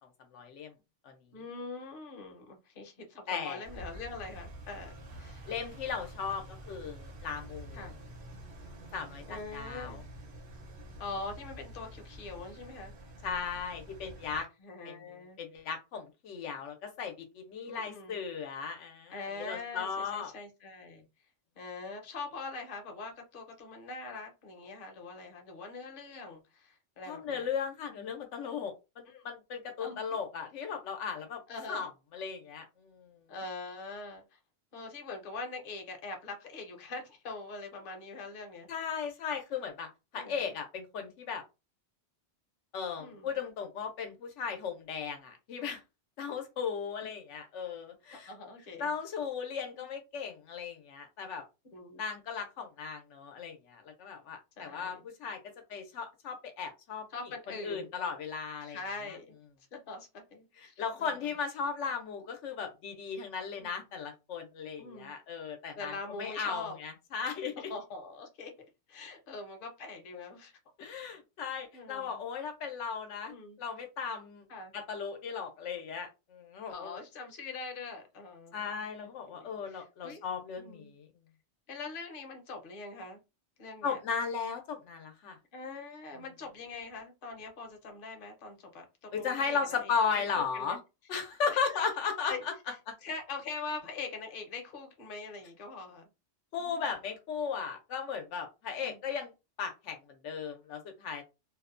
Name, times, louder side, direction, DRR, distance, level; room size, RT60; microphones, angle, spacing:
voice 1, 0.3-0.7 1.0-1.1 3.3-3.6 5.5-7.9 8.9-10.0 13.2-14.5 14.8-15.0 15.4-20.3 27.1-31.4 31.7-33.1 38.7-41.4 42.7-45.8 46.2-48.3 48.8-51.4 52.0-55.4 55.7-57.1 57.5-58.8 59.1-59.2 60.6-65.9 66.2-67.7 70.8-74.4 74.7-76.9 78.5-81.1 83.8-85.4 89.1-90.8 91.1-92.4 92.9-93.0 96.5-99.3 99.6-101.2, left 6 dB, 85° left, 0.9 m, -36 dB
voice 2, 1.3-5.5 7.7-7.9 9.3-10.0 11.0-12.9 14.6-15.4 17.6-18.2 19.1-21.0 21.6-27.5 29.1-29.2 29.8-30.0 31.5-31.8 33.3-34.4 34.7-38.7 40.1-40.5 43.0-43.4 48.3-48.9 51.7-52.0 54.6-55.0 57.1-57.9 58.6-59.3 59.7-61.3 63.6-63.9 64.8-65.1 65.8-66.8 67.7-68.5 68.9-70.5 71.7-72.2 73.2-73.6 74.5-74.7 76.7-80.2 80.6-80.9 81.7-83.2 83.6-84.0 85.5-90.8 91.5-91.8 92.3-92.7 93.0-96.1 96.6-96.9 98.8-99.0, left 3 dB, 55° left, 0.8 m, -43 dB
Engine, 3.6-14.4, right 1 dB, 65° right, 1.0 m, -48 dB
2.6 x 2.1 x 2.4 m
omnidirectional pair, 1.2 m